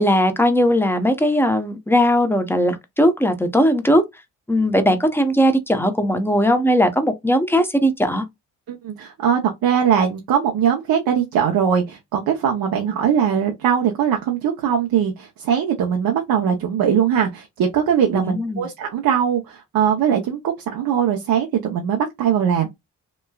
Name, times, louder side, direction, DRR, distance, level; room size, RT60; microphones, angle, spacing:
voice 1, 0.0-4.0 4.5-8.2 18.1-18.7, equal, 5° left, 0.8 m, -18 dB
voice 2, 8.7-22.7, right 8 dB, 75° right, 0.7 m, -20 dB
3.1 x 2.2 x 2.2 m
cardioid pair, 60°, 35 cm